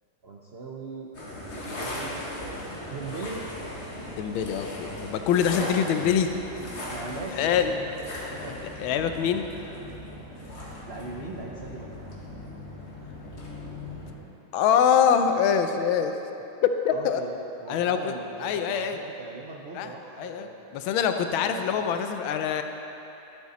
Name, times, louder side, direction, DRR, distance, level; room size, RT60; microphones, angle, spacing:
voice 1, 0.2-1.1 1.5-2.3 2.9-3.5 6.9-8.6 10.9-12.0 16.9-17.3 17.6-20.8 21.4-21.9, right 3 dB, 85° right, -2 dB, 0.5 m, -39 dB
sound 1, 1.1-14.2, left 1 dB, 35° left, 1.6 m, -38 dB
voice 2, 4.2-6.3 7.3-7.7 8.5-9.4 14.5-16.1 16.6-17.2 17.7-18.1 18.4-19.0 19.8-19.9 20.2-20.5 20.7-22.6, left 8 dB, 90° left, 7 dB, 1.4 m, -24 dB
Bowed string instrument, 6.2-10.8, right 1 dB, 20° left, 2.0 m, -54 dB
12.0 x 8.1 x 4.2 m, 3.0 s
omnidirectional pair, 2.2 m